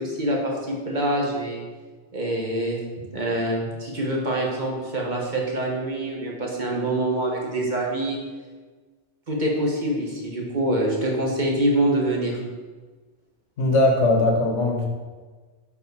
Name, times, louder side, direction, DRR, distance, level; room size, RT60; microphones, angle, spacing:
voice 1, 0.0-1.6 2.1-2.8 3.1-8.2 9.3-12.4, right 1 dB, 40° right, -2 dB, 1.4 m, -25 dB
voice 2, 13.6-14.9, left 2 dB, 85° left, 1 dB, 1.6 m, -20 dB
7.5 x 5.0 x 4.7 m, 1.4 s
omnidirectional pair, 1.2 m